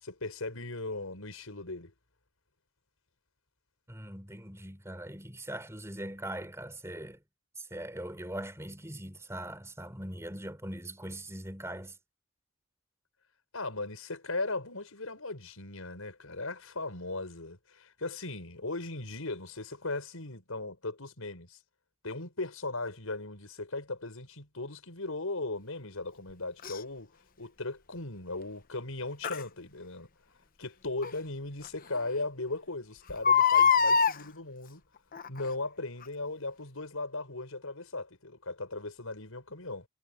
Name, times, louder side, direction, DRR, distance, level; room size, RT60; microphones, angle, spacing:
voice 1, 0.0-1.9 13.5-21.6 22.0-27.1 27.4-30.1 30.6-34.8 35.3-39.9, left 2 dB, 85° left, 5.4 m, -38 dB
voice 2, 3.9-7.2 7.6-12.0, right 1 dB, 15° right, 3.6 m, -41 dB
Crying sobbing, 26.6-26.8 29.2-29.4 31.0-31.1 31.6-31.7 32.0-32.1 33.1-34.2 35.1-35.5 36.0-36.1, left 6 dB, 40° left, 0.9 m, -23 dB
head